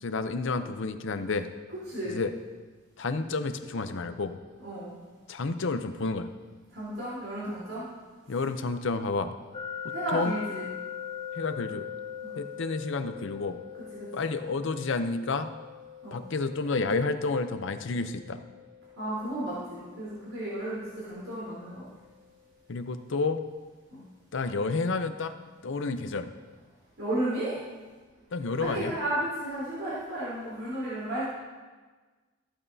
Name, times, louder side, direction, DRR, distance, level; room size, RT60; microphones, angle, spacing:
voice 1, 0.0-1.5 2.1-2.3 3.0-4.3 5.3-6.3 8.3-9.3 10.1-10.4 11.4-11.9 12.4-13.6 14.1-15.5 16.1-18.4 22.7-23.4 24.3-25.3 25.6-26.3 28.3-29.0, left 3 dB, 65° left, 9 dB, 0.6 m, -30 dB
voice 2, 1.9-2.2 4.6-5.0 6.7-7.9 9.9-10.7 12.2-12.4 13.9-14.1 16.0-16.2 19.0-21.8 23.9-24.0 27.0-27.6 28.6-31.2, right 1 dB, 75° right, -10 dB, 3.6 m, -33 dB
sound 1, 9.5-22.4, left 8 dB, 25° left, 0.5 m, -43 dB
14.5 x 8.7 x 2.7 m, 1.3 s
head